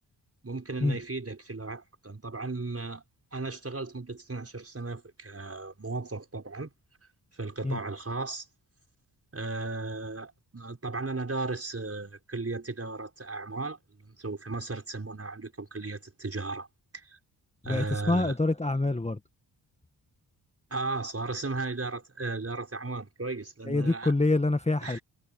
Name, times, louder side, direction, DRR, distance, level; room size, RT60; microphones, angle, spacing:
voice 1, 0.4-3.0 3.3-6.7 7.3-8.5 9.3-16.7 16.9-17.2 17.6-18.4 20.7-24.1 24.8-25.0, right 3 dB, 30° right, 5.7 m, -35 dB
voice 2, 17.6-19.2 23.7-25.0, left 2 dB, 15° left, 1.8 m, -26 dB
supercardioid pair, 40°, 47 cm